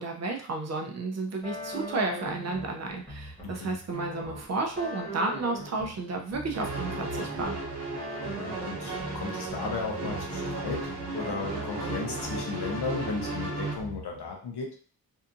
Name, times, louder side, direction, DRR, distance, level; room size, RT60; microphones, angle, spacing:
voice 1, 0.0-7.6, right 3 dB, 40° right, 2 dB, 0.4 m, -32 dB
sound 1, 1.4-14.3, equal, 10° left, 1.0 m, -41 dB
voice 2, 3.4-3.8 8.2-14.7, left 4 dB, 80° left, 1 dB, 0.8 m, -35 dB
sound 2, 6.5-13.8, right 3 dB, 80° right, 1.0 m, -35 dB
2.7 x 2.4 x 2.5 m, 0.43 s
wide cardioid pair, 175°, 39 cm